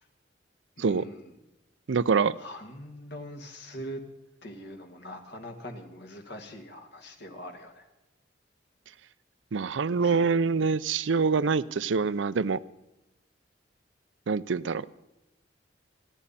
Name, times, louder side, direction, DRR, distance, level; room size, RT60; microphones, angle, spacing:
voice 1, 0.8-1.3 2.4-4.1 4.4-7.9 10.0-10.2, equal, 65° left, 4 dB, 2.1 m, -42 dB
voice 2, 1.9-2.4 9.5-12.6 14.3-14.9, right 5 dB, 85° right, 16 dB, 0.5 m, -25 dB
29.5 x 11.0 x 4.2 m, 0.95 s
head